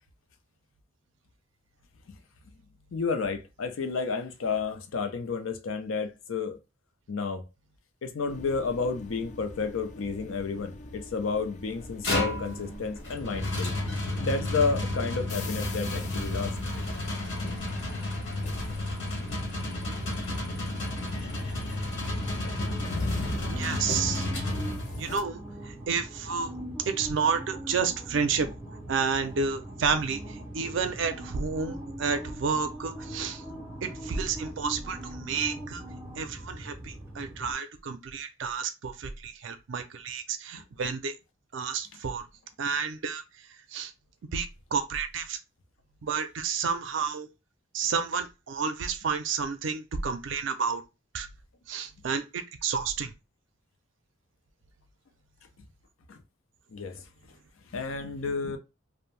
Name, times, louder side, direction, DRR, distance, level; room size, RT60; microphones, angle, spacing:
voice 1, 2.9-6.6 7.1-7.4 8.0-13.7 14.2-16.6 20.2-20.4 56.1-56.2 56.7-57.0 57.7-58.6, left 4 dB, 90° left, 0.5 m, -31 dB
sound 1, 8.3-25.2, left 2 dB, 35° left, 0.3 m, -43 dB
sound 2, 11.7-25.2, left 1 dB, 60° left, 1.1 m, -32 dB
sound 3, 19.2-37.5, right 1 dB, 15° right, 0.5 m, -41 dB
voice 2, 23.5-24.3 25.0-26.5 26.9-28.5 28.9-33.4 33.8-35.8 36.2-41.1 41.5-42.2 42.6-43.2 43.7-43.9 44.3-45.4 46.0-47.3 47.7-50.8 51.1-51.3 51.7-53.1, right 5 dB, 65° right, 0.4 m, -30 dB
2.6 x 2.1 x 3.1 m
head